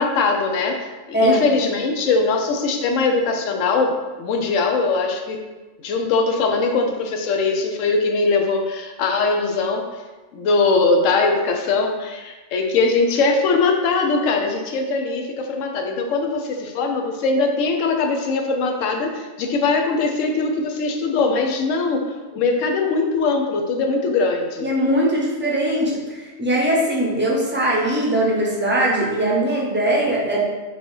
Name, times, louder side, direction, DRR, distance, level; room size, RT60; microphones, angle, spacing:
voice 1, 0.0-5.4 5.8-9.8 10.3-22.0 22.3-24.7, left 3 dB, 85° left, 3 dB, 1.0 m, -21 dB
voice 2, 1.1-1.4 24.6-30.4, right 1 dB, 15° right, -4 dB, 0.5 m, -20 dB
4.4 x 2.8 x 3.1 m, 1.2 s
omnidirectional pair, 1.3 m